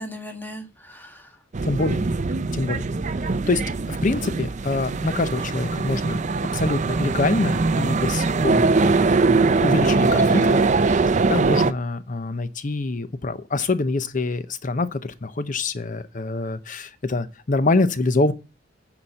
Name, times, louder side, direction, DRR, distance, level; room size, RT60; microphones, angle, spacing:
voice 1, 0.0-1.4 10.2-10.6, left 1 dB, 10° left, 1.6 m, -35 dB
sound 1, 1.5-11.7, right 3 dB, 40° right, 0.5 m, -21 dB
voice 2, 1.6-2.1 2.5-3.0 3.5-3.6 3.9-6.2 6.5-9.0 9.5-10.4 11.3-18.3, left 3 dB, 45° left, 0.7 m, -25 dB
9.8 x 4.4 x 7.7 m
head